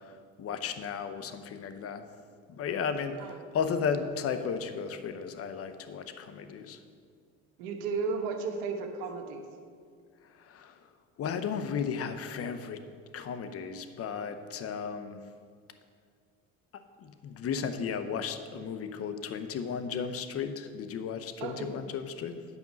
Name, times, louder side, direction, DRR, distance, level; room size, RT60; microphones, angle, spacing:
voice 1, 0.0-2.1 2.5-6.8 10.2-10.8 11.2-12.8 13.1-15.2 17.0-22.5, left 6 dB, 45° left, 10 dB, 0.8 m, -34 dB
voice 2, 7.6-9.4 21.4-21.7, right 4 dB, 85° right, 5 dB, 1.2 m, -34 dB
9.8 x 5.3 x 6.2 m, 2.1 s
supercardioid pair, 95°, 33 cm